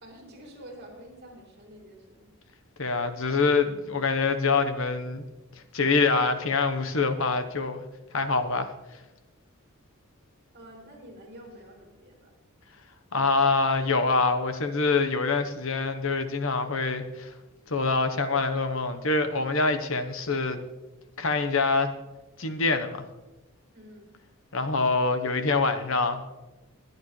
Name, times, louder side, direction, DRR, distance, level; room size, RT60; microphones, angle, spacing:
voice 1, 0.0-2.3 10.5-12.3 23.7-24.2, right 1 dB, 50° right, 0 dB, 3.5 m, -48 dB
voice 2, 2.8-5.2 5.7-7.8 8.1-8.7 13.1-17.3 17.7-20.6 21.2-21.9 22.4-23.0 24.5-26.2, left 4 dB, 65° left, 9 dB, 1.1 m, -25 dB
22.5 x 9.5 x 3.2 m, 1.1 s
head